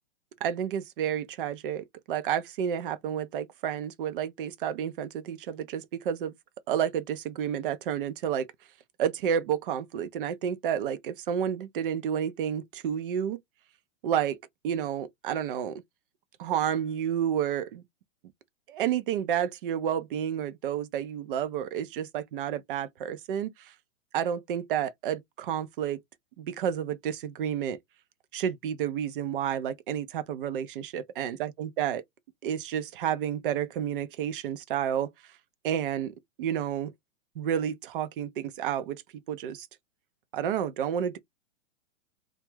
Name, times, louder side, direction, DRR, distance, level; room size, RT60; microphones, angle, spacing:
voice 1, 0.4-6.3 6.7-8.5 9.0-13.4 14.0-14.4 14.6-15.8 16.4-17.8 18.7-23.7 24.1-26.0 26.4-27.8 28.3-32.0 32.4-35.1 35.6-36.9 37.4-39.0 39.3-39.7 40.3-41.2, right 9 dB, 45° right, 0.4 m, -30 dB
2.3 x 2.0 x 3.1 m
hypercardioid pair, 135°, 39 cm